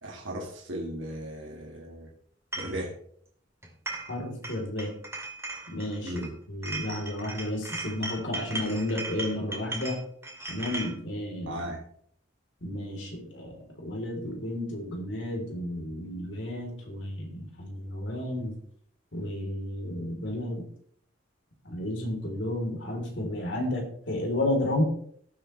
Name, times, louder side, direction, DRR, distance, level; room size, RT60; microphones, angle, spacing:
voice 1, 0.0-2.1 2.6-2.9 6.0-6.3 11.5-11.8, right 1 dB, 80° right, -1 dB, 2.0 m, -36 dB
sound 1, 2.5-2.8 3.6-4.2 4.4-6.3 6.6-10.9, right 2 dB, 15° right, 2.6 m, -37 dB
voice 2, 4.1-4.9 5.7-6.2 6.5-10.0 10.5-11.6 12.6-18.6 19.1-20.6 21.6-24.8, left 1 dB, 70° left, 0 dB, 3.7 m, -32 dB
18.5 x 7.9 x 3.3 m, 0.62 s
head